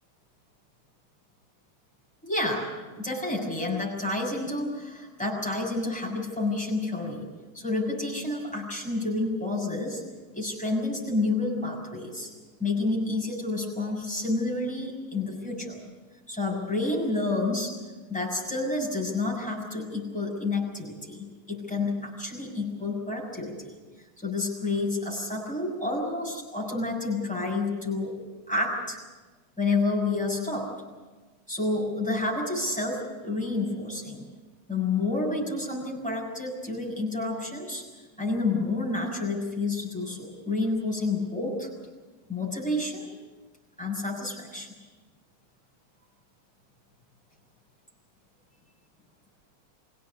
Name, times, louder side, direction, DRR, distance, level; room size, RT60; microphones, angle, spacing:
voice 1, 2.2-2.7 3.0-7.3 7.5-10.0 10.3-12.3 12.6-15.8 16.3-17.7 18.1-23.8 24.2-28.1 28.5-29.0 29.6-30.7 31.5-34.2 34.7-37.8 38.2-41.7 42.3-43.1 43.8-44.7, left 2 dB, 5° left, -3 dB, 6.5 m, -29 dB
24.5 x 17.0 x 8.5 m, 1.3 s
omnidirectional pair, 1.9 m